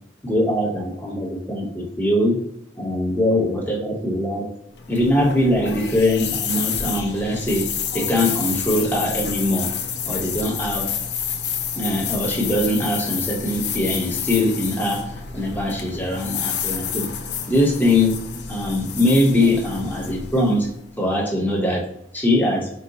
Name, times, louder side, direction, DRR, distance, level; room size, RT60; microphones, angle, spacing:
voice 1, 0.2-2.4 2.8-4.5 4.9-9.7 10.0-10.9 11.8-17.1 17.5-18.2 18.5-20.7 21.0-21.9 22.1-22.7, left 1 dB, 10° left, -2 dB, 0.9 m, -22 dB
sound 1, 4.7-20.9, left 7 dB, 60° left, 0.6 m, -29 dB
4.8 x 2.2 x 3.9 m, 0.76 s
head